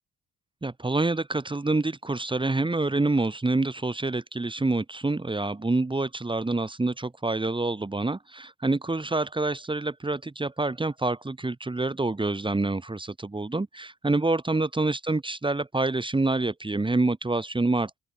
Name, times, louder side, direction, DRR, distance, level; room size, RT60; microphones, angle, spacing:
voice 1, 0.6-18.0, right 2 dB, 15° right, 2.2 m, -27 dB
open air
cardioid pair, 90°, 30 cm